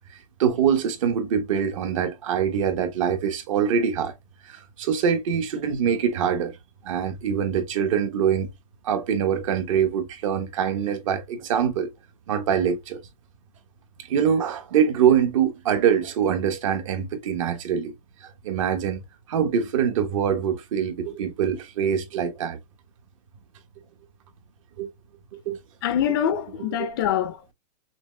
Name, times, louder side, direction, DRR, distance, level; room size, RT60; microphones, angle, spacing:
voice 1, 0.4-4.1 4.4-6.6 6.8-8.5 8.8-11.9 12.3-13.0 14.1-17.9 18.2-19.0 19.3-22.6 24.8-24.9 25.3-25.6, right 8 dB, 55° right, 1.2 m, -24 dB
voice 2, 25.8-27.5, left 9 dB, 35° left, 0.5 m, -25 dB
6.0 x 2.5 x 2.2 m
supercardioid pair, 170°, 20 cm